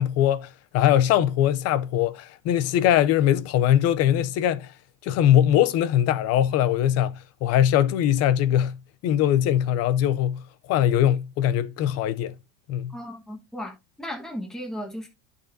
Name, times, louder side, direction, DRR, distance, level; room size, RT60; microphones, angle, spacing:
voice 1, 0.0-4.7 5.0-12.3 12.7-12.9, left 11 dB, 35° left, 0.5 m, -22 dB
voice 2, 12.9-15.1, equal, ahead, 1.4 m, -35 dB
11.5 x 6.7 x 2.6 m
supercardioid pair, 150°, 48 cm